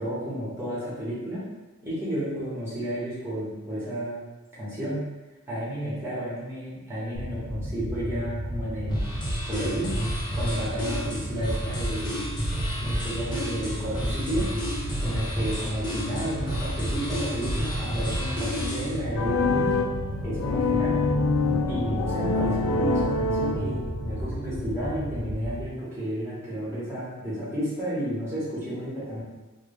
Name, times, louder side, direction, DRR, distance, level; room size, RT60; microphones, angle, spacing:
voice 1, 0.0-1.4 1.8-4.2 4.6-5.0 5.5-9.1 9.5-9.9 10.3-12.2 12.8-14.5 15.0-19.7 20.2-21.0 21.7-29.2, right 1 dB, 10° right, -9 dB, 1.4 m, -32 dB
sound 1, 7.1-25.6, equal, 50° right, 0.6 m, -33 dB
sound 2, 8.9-19.0, equal, 20° left, 0.8 m, -31 dB
sound 3, 19.1-24.1, left 3 dB, 65° left, 0.3 m, -26 dB
3.3 x 2.3 x 3.4 m, 1.2 s
head